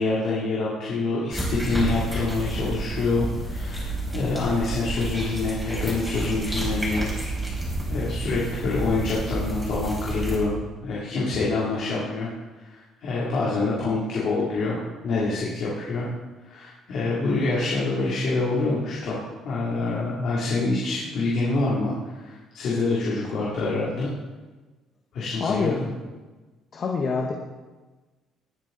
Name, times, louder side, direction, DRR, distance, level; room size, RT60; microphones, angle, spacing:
voice 1, 0.0-7.1 7.9-10.5 10.8-12.3 12.7-16.1 16.5-24.1 25.1-25.9, left 3 dB, 55° left, -6 dB, 3.1 m, -26 dB
sound 1, 1.3-10.4, right 2 dB, 5° right, 3.7 m, -30 dB
voice 2, 25.4-25.8 26.7-27.3, left 4 dB, 35° left, 1 dB, 1.2 m, -25 dB
20.0 x 8.4 x 4.1 m, 1.3 s
cardioid pair, 155°, 0 cm